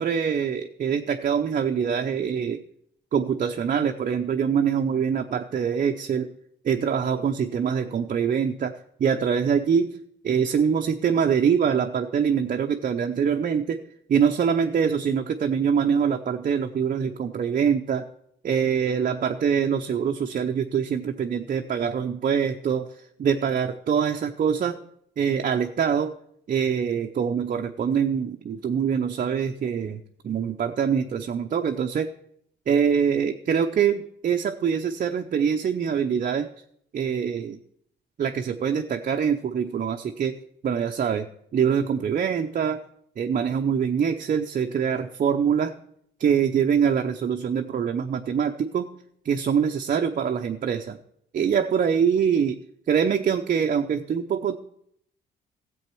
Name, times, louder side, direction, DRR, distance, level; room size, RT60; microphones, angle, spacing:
voice 1, 0.0-2.6 3.1-6.3 6.6-8.7 9.0-10.0 10.2-13.8 14.1-18.0 18.4-22.9 23.2-24.8 25.2-26.1 26.5-32.1 32.7-36.5 36.9-37.6 38.2-42.8 43.2-45.7 46.2-48.9 49.2-51.0 51.3-52.6 52.9-54.6, right 7 dB, 45° right, 5 dB, 0.6 m, -24 dB
14.0 x 7.8 x 4.5 m, 0.72 s
cardioid pair, 90°, 20 cm